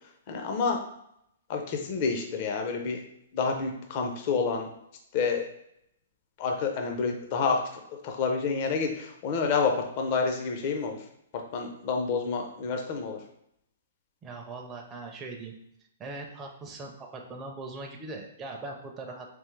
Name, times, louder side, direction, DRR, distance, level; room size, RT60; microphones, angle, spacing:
voice 1, 0.3-0.8 1.5-3.0 3.3-4.7 5.1-5.4 6.4-7.6 7.9-11.0 11.3-13.2, left 5 dB, 40° left, 3 dB, 0.5 m, -28 dB
voice 2, 14.2-15.5 16.0-19.3, right 3 dB, 15° right, 1 dB, 0.4 m, -40 dB
3.4 x 3.4 x 3.2 m, 0.75 s
hypercardioid pair, 150°, 0 cm